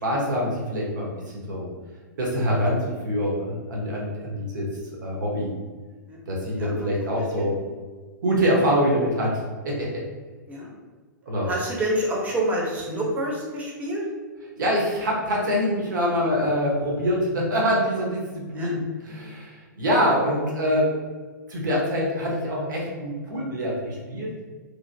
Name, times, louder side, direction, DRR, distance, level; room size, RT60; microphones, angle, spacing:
voice 1, 0.0-1.7 2.2-2.8 3.0-4.7 5.0-5.5 6.3-7.6 8.2-9.9 11.2-11.5 14.6-20.9 21.5-24.3, equal, 70° right, -3 dB, 1.1 m, -25 dB
voice 2, 6.6-7.1 7.4-7.5 10.5-10.7 11.5-14.0 18.5-18.7, right 1 dB, 15° right, -3 dB, 0.8 m, -28 dB
3.1 x 2.7 x 2.7 m, 1.4 s
hypercardioid pair, 120°, 10 cm